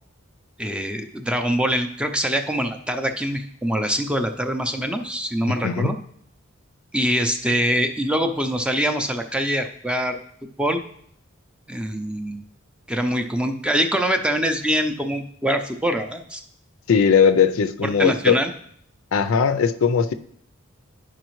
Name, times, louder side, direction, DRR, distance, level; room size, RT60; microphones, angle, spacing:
voice 1, 0.6-6.0 6.9-10.2 10.6-10.8 11.7-12.4 12.9-16.4 18.0-18.5, equal, 5° right, 6 dB, 0.4 m, -24 dB
voice 2, 5.6-5.9 16.9-18.4 19.1-20.1, left 6 dB, 75° left, 10 dB, 0.4 m, -18 dB
11.5 x 4.9 x 3.1 m, 0.68 s
head